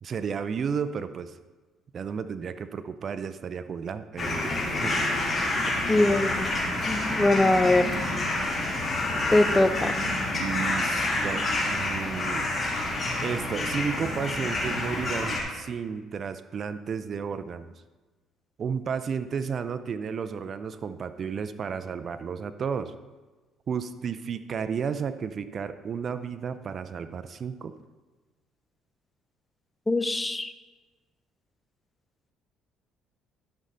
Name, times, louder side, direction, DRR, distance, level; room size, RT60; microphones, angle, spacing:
voice 1, 0.0-1.4 1.9-5.0 10.4-12.5 13.2-17.7 18.6-22.9 23.7-27.7, right 6 dB, 45° right, 12 dB, 0.5 m, -33 dB
sound 1, 4.2-15.4, left 2 dB, 30° left, 3.2 m, -28 dB
voice 2, 5.9-6.5 6.9-7.9 9.3-9.9 29.9-30.5, left 2 dB, 15° left, 10 dB, 0.6 m, -22 dB
12.5 x 5.5 x 3.9 m, 1.2 s
cardioid pair, 90°, 0 cm